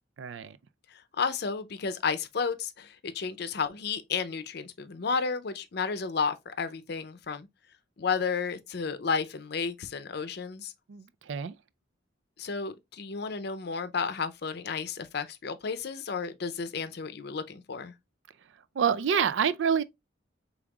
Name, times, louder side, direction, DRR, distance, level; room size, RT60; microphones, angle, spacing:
voice 1, 0.2-0.6 10.9-11.5 18.8-19.8, right 7 dB, 85° right, 0.4 m, -27 dB
voice 2, 0.9-7.5 8.0-10.7 12.4-17.9, left 5 dB, 60° left, 0.6 m, -32 dB
5.3 x 3.5 x 2.3 m
head